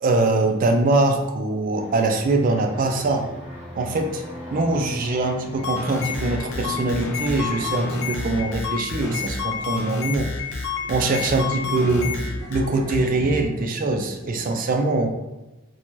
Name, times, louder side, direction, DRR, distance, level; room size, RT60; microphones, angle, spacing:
voice 1, 0.0-3.3 3.7-4.2 4.5-10.3 10.9-12.1 12.5-15.1, right 2 dB, 40° right, 4 dB, 0.3 m, -23 dB
sound 1, 1.7-8.5, equal, 10° right, 0.9 m, -37 dB
sound 2, 5.6-13.0, left 4 dB, 75° left, 0.4 m, -29 dB
sound 3, 9.3-14.5, equal, 35° left, 0.9 m, -38 dB
2.6 x 2.2 x 3.0 m, 1.1 s
head